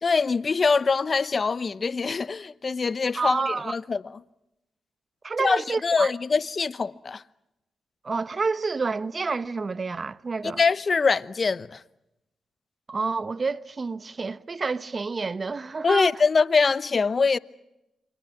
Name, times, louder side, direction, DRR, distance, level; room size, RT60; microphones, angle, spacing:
voice 1, 0.0-4.2 5.4-7.2 10.4-11.8 15.8-17.4, left 4 dB, 45° left, 0.9 m, -24 dB
voice 2, 3.1-3.7 5.2-6.1 8.0-10.6 12.9-16.1, right 4 dB, 45° right, 0.9 m, -29 dB
29.0 x 25.5 x 6.1 m
supercardioid pair, 50°, 0 cm